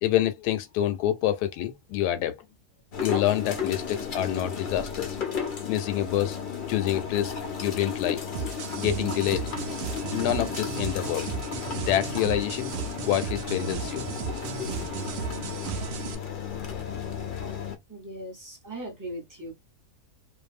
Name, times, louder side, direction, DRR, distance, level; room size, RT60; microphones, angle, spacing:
voice 1, 0.0-2.4 3.0-5.2 5.7-6.4 6.7-7.3 7.6-8.2 8.7-9.5 10.1-11.3 11.7-12.7 13.0-14.0 15.1-15.2, left 12 dB, 90° left, 1.1 m, -27 dB
sound 1, 2.9-17.8, left 6 dB, 55° left, 0.5 m, -34 dB
sound 2, 8.3-16.1, right 7 dB, 80° right, 0.5 m, -35 dB
voice 2, 17.9-19.5, right 1 dB, 15° right, 0.7 m, -38 dB
2.6 x 2.3 x 2.4 m
omnidirectional pair, 1.7 m